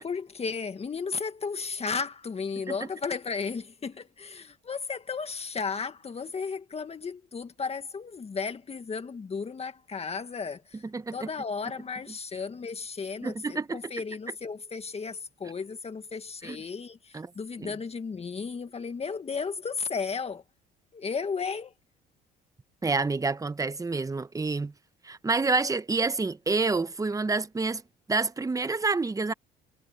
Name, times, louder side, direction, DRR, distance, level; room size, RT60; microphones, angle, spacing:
voice 1, 0.0-10.8 11.1-20.4 20.9-21.7, left 5 dB, 30° left, 1.7 m, -34 dB
voice 2, 10.9-11.3 13.2-13.8 16.4-16.6 17.1-17.3 17.6-17.7 22.8-24.7 25.0-27.8 28.1-29.3, right 3 dB, 15° right, 1.1 m, -28 dB
supercardioid pair, 80°, 19 cm